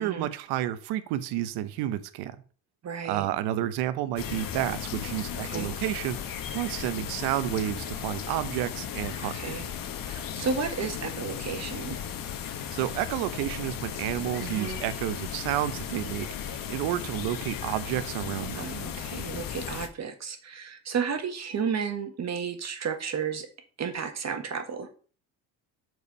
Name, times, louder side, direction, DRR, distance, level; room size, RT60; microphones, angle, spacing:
voice 1, 0.0-2.4 3.0-9.4 12.7-18.7, right 13 dB, 85° right, 14 dB, 0.9 m, -30 dB
voice 2, 2.8-3.3 5.4-5.7 9.2-9.7 10.0-12.0 14.4-14.8 18.5-23.5 23.8-24.9, right 6 dB, 45° right, 6 dB, 1.7 m, -33 dB
sound 1, 4.2-19.9, left 8 dB, 60° left, 1.2 m, -36 dB
6.9 x 4.7 x 5.4 m, 0.40 s
cardioid pair, 90°, 38 cm